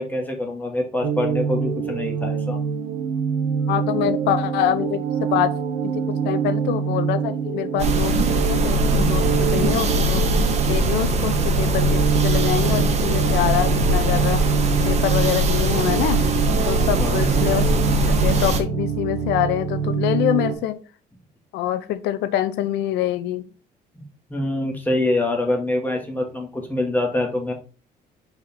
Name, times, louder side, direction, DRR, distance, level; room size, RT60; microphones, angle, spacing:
voice 1, 0.0-2.6 17.0-17.5 24.3-27.5, left 1 dB, 10° left, 1.9 m, -25 dB
sound 1, 1.0-20.5, right 7 dB, 85° right, 1.3 m, -25 dB
voice 2, 3.7-5.5 5.8-10.2 10.7-14.5 14.9-16.2 16.6-17.8 18.1-20.8 21.5-23.5, left 12 dB, 85° left, 0.7 m, -25 dB
sound 2, 7.8-18.6, right 1 dB, 40° right, 1.2 m, -21 dB
5.0 x 4.4 x 4.2 m
cardioid pair, 110°, 17 cm